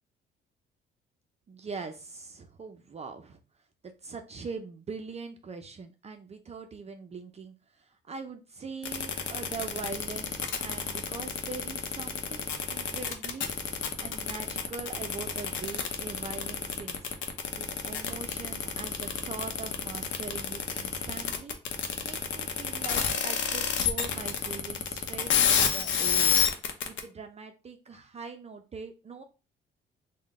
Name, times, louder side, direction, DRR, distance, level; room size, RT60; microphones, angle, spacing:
voice 1, 1.5-3.4 4.0-17.0 17.5-21.6 22.0-26.4 26.9-29.2, right 4 dB, 35° right, 5 dB, 0.5 m, -42 dB
sound 1, 8.8-27.0, left 8 dB, 70° left, 0.7 m, -29 dB
3.7 x 2.2 x 3.5 m, 0.32 s
cardioid pair, 90°, 20 cm